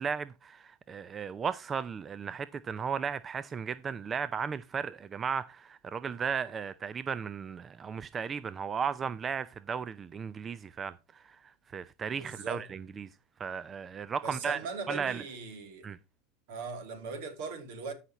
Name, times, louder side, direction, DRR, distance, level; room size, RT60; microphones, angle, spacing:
voice 1, 0.0-13.1 13.4-14.6 14.9-15.2 15.8-16.0, right 6 dB, 30° right, 0.4 m, -35 dB
voice 2, 12.1-12.7 14.2-15.9 16.5-17.9, right 4 dB, 70° right, 2.9 m, -39 dB
13.5 x 5.8 x 3.0 m
supercardioid pair, 105°, 0 cm